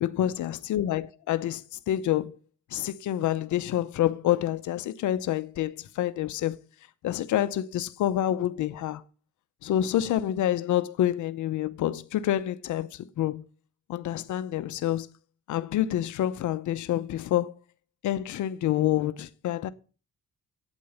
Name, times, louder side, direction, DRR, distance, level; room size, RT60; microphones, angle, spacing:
voice 1, 0.0-2.4 2.7-6.6 7.0-9.0 9.6-13.4 13.9-15.1 15.5-17.5 18.0-19.7, left 12 dB, 75° left, 0.8 m, -27 dB
9.1 x 8.2 x 6.9 m
cardioid pair, 90°, 30 cm